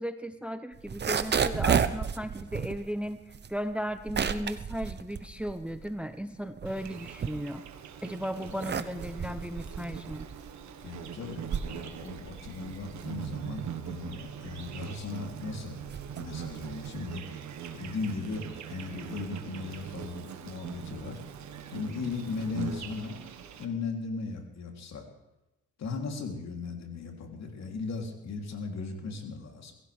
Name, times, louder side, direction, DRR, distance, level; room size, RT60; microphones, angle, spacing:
voice 1, 0.0-3.2 3.5-7.6 8.0-10.3, equal, 5° right, 11 dB, 0.7 m, -36 dB
sound 1, 0.7-6.0 6.4-7.8 8.3-17.1, right 7 dB, 35° right, 0.8 m, -33 dB
Insect, 6.6-23.6, right 8 dB, 65° right, 1.6 m, -42 dB
voice 2, 10.8-15.8 16.2-17.4 17.7-21.2 21.7-23.2 23.6-25.1 25.8-29.7, left 4 dB, 60° left, 1 dB, 3.4 m, -37 dB
22.5 x 16.0 x 3.5 m, 0.98 s
cardioid pair, 90°, 30 cm